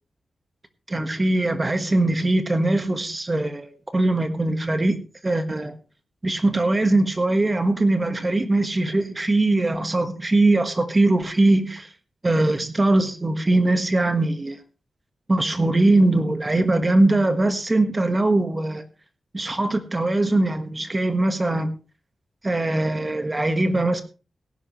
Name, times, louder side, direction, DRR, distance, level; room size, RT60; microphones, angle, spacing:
voice 1, 0.9-5.7 6.2-11.9 12.2-14.6 15.3-18.8 19.3-21.7 22.4-24.0, right 2 dB, 20° right, 8 dB, 1.4 m, -21 dB
17.5 x 11.0 x 3.1 m, 0.33 s
wide cardioid pair, 160°, 0 cm